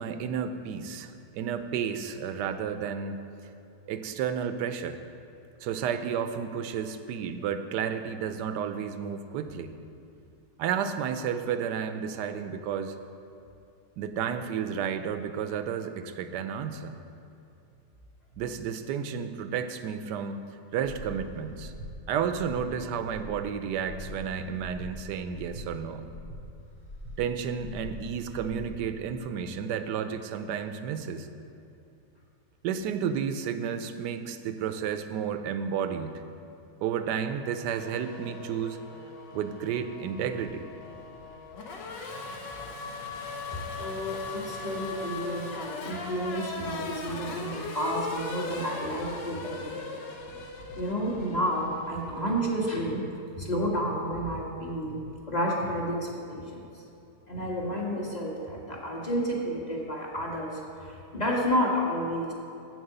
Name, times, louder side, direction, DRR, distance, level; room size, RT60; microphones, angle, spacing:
voice 1, 0.0-3.2 3.9-5.0 5.6-9.7 10.6-13.0 14.0-17.0 18.4-20.5 20.7-21.7 22.1-26.0 27.2-31.3 32.6-36.2 36.8-38.8 39.3-40.6, right 7 dB, 80° right, 9 dB, 1.2 m, -32 dB
Breathing, 21.0-21.2 21.5-21.9 22.3-22.7 23.0-23.4 23.8-24.2 24.6-24.9 25.3-25.7 26.1-26.4 26.8-27.2 27.6-27.9 28.3-28.7, equal, 65° left, 2.3 m, -42 dB
Race car auto racing / Accelerating revving vroom, 37.8-52.6, left 3 dB, 85° left, 1.6 m, -39 dB
voice 2, 43.5-49.8 50.8-53.0 53.4-56.6 57.3-62.3, equal, 25° left, -2 dB, 1.4 m, -31 dB
8.0 x 7.8 x 6.6 m, 2.7 s
omnidirectional pair, 1.9 m